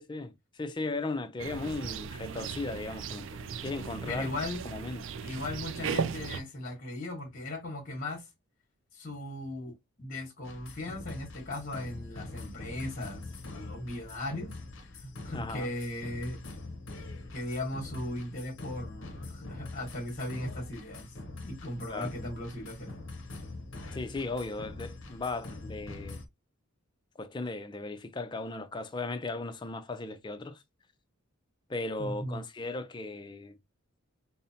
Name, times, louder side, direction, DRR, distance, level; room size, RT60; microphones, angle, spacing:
voice 1, 0.0-4.3 4.6-5.0 15.3-15.7 21.9-22.1 23.9-26.2 27.2-30.6 31.7-33.6, left 3 dB, 20° left, 0.4 m, -37 dB
sound 1, 1.4-6.4, right 6 dB, 55° right, 0.3 m, -37 dB
voice 2, 4.1-4.6 5.2-8.2 8.9-9.7 10.0-14.5 15.0-16.4 17.3-21.1 21.4-22.9 32.0-32.4, left 1 dB, 40° left, 1.2 m, -37 dB
sound 2, 10.4-26.3, left 2 dB, 55° left, 0.7 m, -44 dB
5.3 x 2.1 x 2.7 m
head